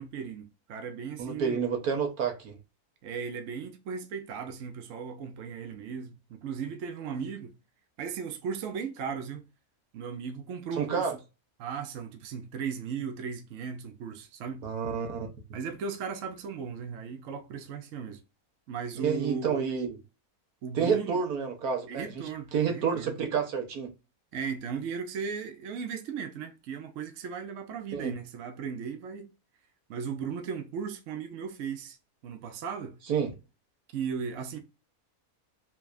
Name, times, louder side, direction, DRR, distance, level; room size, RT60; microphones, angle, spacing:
voice 1, 0.0-1.6 3.0-7.5 8.0-9.4 9.9-11.1 11.6-14.7 15.5-18.2 18.7-19.6 20.6-21.2 21.9-23.2 24.3-29.3 29.9-32.0 32.2-33.0 33.9-34.6, right 6 dB, 65° right, 1.0 m, -36 dB
voice 2, 1.2-2.6 10.8-11.1 14.6-15.3 18.9-20.0 20.7-22.2 22.5-23.9 27.9-28.1 33.1-33.3, right 6 dB, 80° right, 1.5 m, -29 dB
5.1 x 3.5 x 2.5 m
omnidirectional pair, 1.6 m